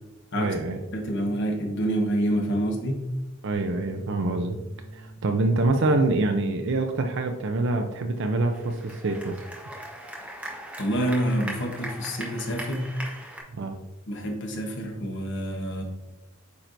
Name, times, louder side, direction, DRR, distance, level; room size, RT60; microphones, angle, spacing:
voice 1, 0.4-0.8 3.4-4.6 4.9-9.4 13.5-13.8, right 2 dB, 60° right, 4 dB, 0.5 m, -25 dB
voice 2, 0.9-3.0 10.8-12.9 14.1-15.8, right 1 dB, 55° left, 1 dB, 1.2 m, -27 dB
sound 1, 3.5-9.8, right 1 dB, 70° left, 2.2 m, -48 dB
sound 2, 8.5-13.4, right 1 dB, 5° right, 1.1 m, -39 dB
8.5 x 4.5 x 2.6 m, 1.0 s
head